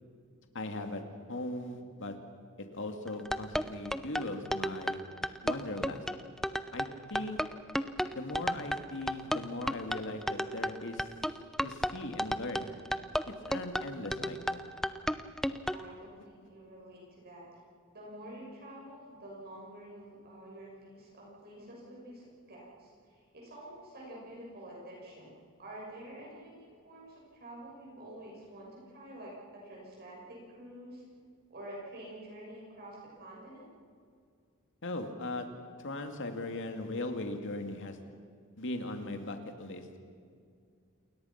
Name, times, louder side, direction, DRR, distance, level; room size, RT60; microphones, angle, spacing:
voice 1, 0.5-1.0 1.3-2.2 2.6-5.0 5.4-6.0 6.7-7.4 8.1-11.1 11.6-12.7 13.3-14.6 34.8-35.5 35.8-38.0 38.6-40.0, left 2 dB, 60° left, 5 dB, 2.5 m, -39 dB
sound 1, 3.1-15.8, equal, ahead, 0.7 m, -33 dB
voice 2, 15.7-17.6 17.9-31.0 31.5-33.7, right 1 dB, 50° right, -3 dB, 7.0 m, -48 dB
28.5 x 21.5 x 6.0 m, 2.2 s
head